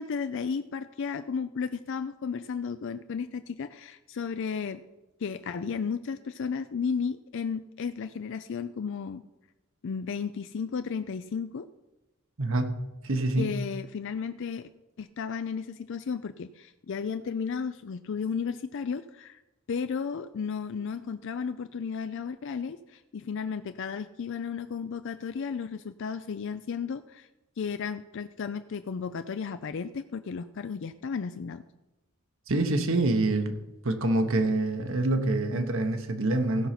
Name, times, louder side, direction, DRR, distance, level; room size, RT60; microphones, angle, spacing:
voice 1, 0.0-4.8 5.2-9.2 9.8-11.7 13.4-14.7 15.0-19.4 19.7-27.3 27.6-31.6, left 6 dB, 55° left, 10 dB, 0.4 m, -34 dB
voice 2, 12.4-12.8 13.0-13.5 32.5-33.6 33.8-36.7, right 2 dB, 60° right, 6 dB, 1.0 m, -26 dB
16.5 x 5.5 x 5.8 m, 1.0 s
head